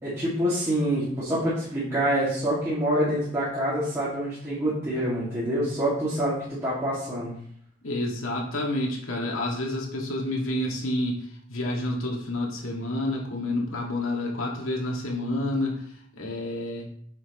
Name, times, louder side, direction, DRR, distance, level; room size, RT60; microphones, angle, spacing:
voice 1, 0.0-7.3, right 1 dB, 15° right, -10 dB, 2.0 m, -26 dB
voice 2, 7.8-15.8 16.2-16.9, left 1 dB, 85° left, -2 dB, 1.9 m, -29 dB
8.7 x 5.9 x 3.0 m, 0.63 s
head